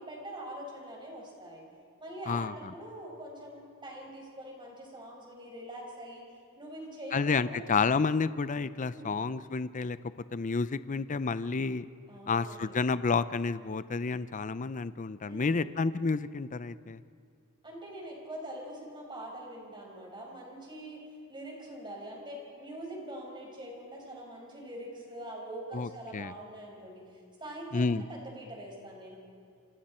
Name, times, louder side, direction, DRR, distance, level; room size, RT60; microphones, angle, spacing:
voice 1, 0.0-1.6 2.0-6.2 6.5-7.7 8.9-9.2 12.1-12.7 15.3-15.7 17.6-21.0 21.3-27.0 27.4-29.2, right 1 dB, 20° right, -1 dB, 5.2 m, -43 dB
voice 2, 7.1-10.0 10.3-11.8 12.3-17.0 25.7-26.3 27.7-28.0, left 4 dB, 35° left, 14 dB, 0.5 m, -30 dB
28.0 x 25.0 x 4.4 m, 2.2 s
head